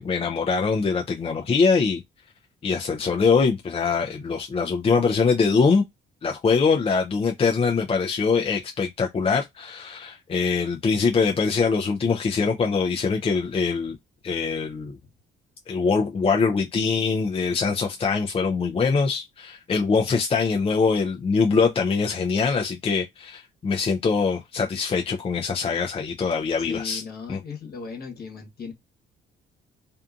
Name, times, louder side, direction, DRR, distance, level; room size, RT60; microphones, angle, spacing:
voice 1, 0.0-2.0 2.6-5.8 6.2-14.0 14.2-15.0 15.7-27.0 27.3-27.4, left 5 dB, 30° left, 0.4 m, -23 dB
voice 2, 26.6-28.7, left 5 dB, 50° left, 1.1 m, -37 dB
2.6 x 2.5 x 2.3 m
cardioid pair, 90°, 20 cm